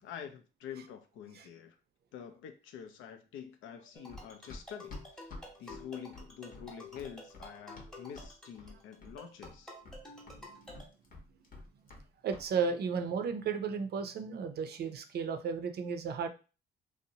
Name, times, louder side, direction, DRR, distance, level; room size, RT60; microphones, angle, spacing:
voice 1, 0.0-1.8 2.1-5.3 5.6-9.7, left 8 dB, 85° left, 7 dB, 0.5 m, -47 dB
sound 1, 3.9-10.9, left 1 dB, 5° left, 0.8 m, -51 dB
Run, 4.1-8.3 8.6-9.2 9.4-12.1 12.3-12.5, left 2 dB, 45° left, 0.8 m, -49 dB
voice 2, 12.2-16.3, right 6 dB, 55° right, 7 dB, 0.5 m, -34 dB
2.6 x 2.0 x 2.7 m, 0.33 s
cardioid pair, 90°, 20 cm